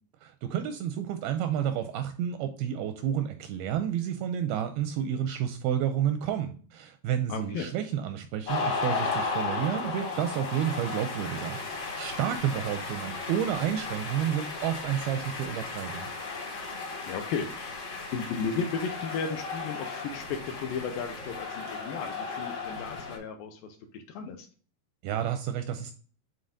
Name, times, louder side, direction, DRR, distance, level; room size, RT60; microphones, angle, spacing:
voice 1, 0.2-16.1 25.0-25.9, right 9 dB, 85° right, 8 dB, 2.2 m, -30 dB
voice 2, 7.3-7.7 17.1-17.8 18.1-24.5, left 5 dB, 75° left, 6 dB, 2.2 m, -34 dB
sound 1, 8.5-23.2, left 4 dB, 45° left, 1.5 m, -35 dB
9.5 x 3.9 x 2.6 m, 0.41 s
omnidirectional pair, 4.7 m